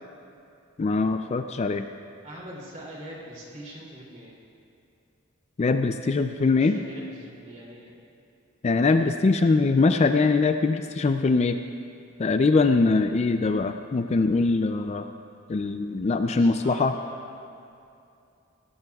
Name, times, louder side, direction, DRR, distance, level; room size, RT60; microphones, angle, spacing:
voice 1, 0.8-1.9 5.6-6.8 8.6-11.6 12.2-15.0 15.5-16.9, left 3 dB, 35° left, 8 dB, 0.4 m, -22 dB
voice 2, 2.2-4.4 6.5-8.0 16.2-17.2, right 1 dB, 35° right, -4 dB, 2.8 m, -43 dB
16.5 x 16.5 x 2.3 m, 2.6 s
head